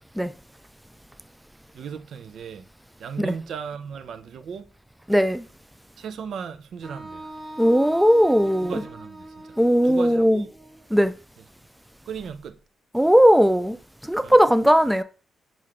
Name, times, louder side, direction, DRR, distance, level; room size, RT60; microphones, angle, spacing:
voice 1, 1.7-2.7 3.0-4.7 6.0-7.3 8.6-9.6 9.8-10.5 12.1-12.6 14.2-14.4, right 7 dB, 70° right, 0.5 m, -36 dB
voice 2, 5.1-5.4 7.6-8.8 9.6-10.4 10.9-11.1 12.9-13.8 14.0-15.0, equal, 5° right, 0.3 m, -18 dB
Wind instrument woodwind instrument, 6.8-10.9, right 1 dB, 25° right, 1.2 m, -41 dB
5.6 x 2.5 x 3.2 m
cardioid pair, 75°, 0 cm